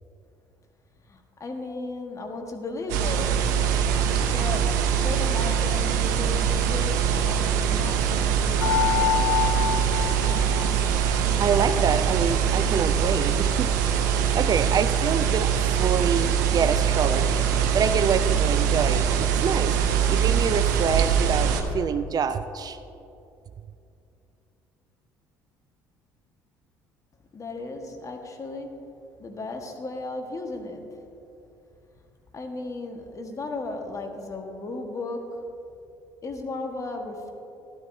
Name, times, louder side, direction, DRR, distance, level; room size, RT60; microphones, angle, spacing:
voice 1, 1.1-3.4 4.2-4.7 5.0-9.2 27.3-28.7 29.2-30.8 32.3-35.4 36.2-37.3, left 2 dB, 30° left, 4 dB, 1.4 m, -35 dB
sound 1, 2.9-21.6, right 8 dB, 75° right, 0.7 m, -23 dB
sound 2, 8.6-11.1 11.4-12.4 12.9-13.0 13.3-13.4, left 11 dB, 65° left, 2.7 m, -28 dB
voice 2, 11.4-13.7 14.1-17.5 17.7-19.8 20.1-22.8, right 6 dB, 40° right, 11 dB, 0.4 m, -26 dB
12.5 x 12.0 x 2.7 m, 2.7 s
hypercardioid pair, 55°, 10 cm